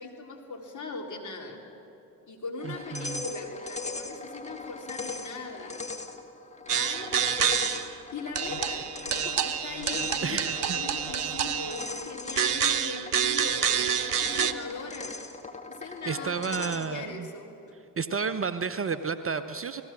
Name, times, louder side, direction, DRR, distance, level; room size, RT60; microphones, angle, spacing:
voice 1, 0.0-1.6 2.3-5.8 6.6-7.1 8.1-15.1 15.7-17.6, left 3 dB, 40° left, 0 dB, 4.0 m, -40 dB
sound 1, 2.6-17.1, left 3 dB, 15° left, 2.2 m, -40 dB
voice 2, 2.6-3.2 10.2-10.6 16.1-17.3 18.0-19.8, right 5 dB, 30° right, 12 dB, 0.9 m, -31 dB
sound 2, 6.7-7.9 8.4-11.9 12.4-14.5, right 8 dB, 85° right, 0.7 m, -28 dB
29.5 x 19.0 x 6.3 m, 2.9 s
figure-of-eight pair, 40°, 45 cm